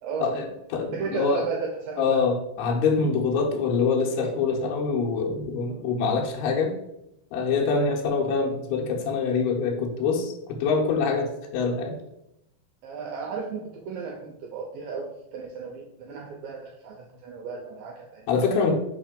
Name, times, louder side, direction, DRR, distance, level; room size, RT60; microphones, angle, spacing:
voice 1, 0.0-0.4 0.9-2.3 5.7-5.8 12.8-18.3, right 5 dB, 75° right, 0 dB, 2.2 m, -34 dB
voice 2, 0.7-1.4 2.0-6.7 7.3-12.0 18.3-18.7, left 5 dB, 80° left, -1 dB, 2.8 m, -25 dB
5.8 x 3.3 x 5.1 m, 0.84 s
omnidirectional pair, 4.6 m